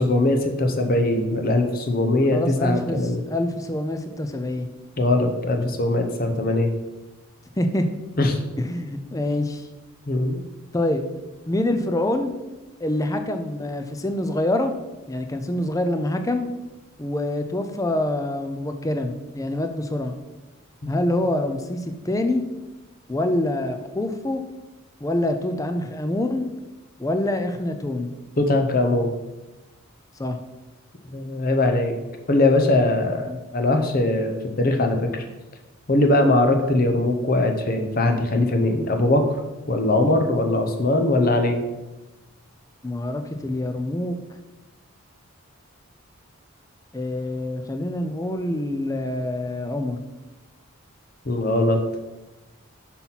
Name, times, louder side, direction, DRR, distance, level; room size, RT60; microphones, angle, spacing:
voice 1, 0.0-3.2 5.0-6.7 8.2-8.4 10.1-10.4 20.8-21.0 28.4-29.1 31.1-31.9 32.3-35.2 35.9-39.2 39.7-41.6 51.3-51.8, left 2 dB, 40° left, 5 dB, 0.7 m, -21 dB
voice 2, 2.3-4.7 7.6-7.9 8.6-9.7 10.7-11.0 11.5-12.3 12.8-14.7 15.1-16.5 17.0-20.2 20.9-22.4 23.1-24.4 25.0-26.5 27.0-28.1 30.2-30.4 33.3-33.4 42.8-44.2 46.9-50.0, left 1 dB, 15° left, 7 dB, 0.4 m, -26 dB
5.8 x 5.7 x 4.1 m, 1.1 s
head